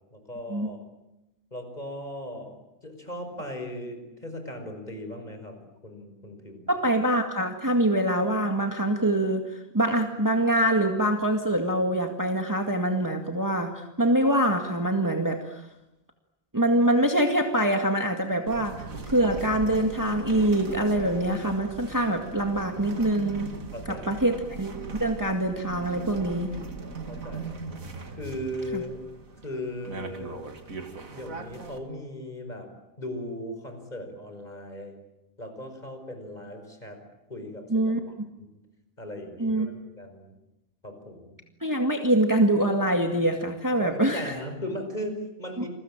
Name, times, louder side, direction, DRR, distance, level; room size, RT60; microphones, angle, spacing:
voice 1, 0.1-0.9 1.5-2.6 2.8-6.7 23.7-24.1 27.1-27.6 28.1-29.0 29.4-30.4 31.1-32.7 33.0-34.9 35.4-37.0 37.3-37.9 38.4-38.5 39.0-40.3 40.8-41.4 43.8-45.7, left 1 dB, 30° left, 6 dB, 5.5 m, -37 dB
voice 2, 6.7-15.6 16.5-18.8 19.1-23.5 24.1-24.7 25.0-26.5 28.7-28.8 37.7-38.0 39.4-39.7 41.6-44.3 45.6-45.7, right 1 dB, 15° right, 4 dB, 2.0 m, -24 dB
sound 1, 18.5-31.8, right 3 dB, 80° right, 2.7 m, -39 dB
29.0 x 22.0 x 8.9 m, 0.91 s
omnidirectional pair, 1.4 m